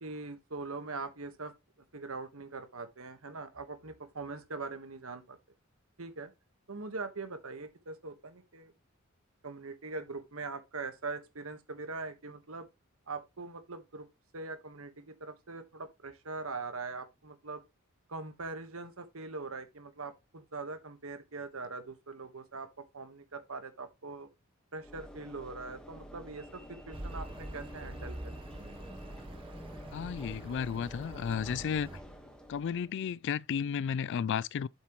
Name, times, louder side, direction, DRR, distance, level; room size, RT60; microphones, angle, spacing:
voice 1, 0.0-1.5 1.9-5.4 6.0-6.3 6.7-8.7 9.4-12.7 13.1-14.1 14.3-17.6 18.1-24.3 24.7-28.3, right 3 dB, 75° right, 1.4 m, -42 dB
Train / Engine / Alarm, 24.8-33.1, equal, 5° left, 1.4 m, -50 dB
Accelerating revving vroom, 26.9-32.0, right 1 dB, 25° right, 1.0 m, -44 dB
voice 2, 29.9-31.9 32.5-34.7, left 7 dB, 60° left, 0.3 m, -33 dB
7.6 x 7.1 x 3.0 m
head